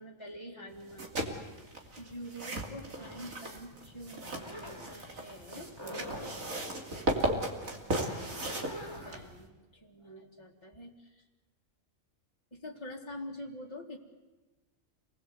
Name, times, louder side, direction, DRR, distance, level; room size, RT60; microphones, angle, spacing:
voice 1, 0.0-5.7 7.3-8.7 9.0-11.2 12.5-14.0, equal, 20° left, -2 dB, 2.4 m, -47 dB
sound 1, 0.8-9.5, right 1 dB, 85° right, 3.3 m, -36 dB
sound 2, 2.9-9.2, equal, 20° right, 5.0 m, -46 dB
28.0 x 20.5 x 8.1 m, 1.2 s
omnidirectional pair, 1.4 m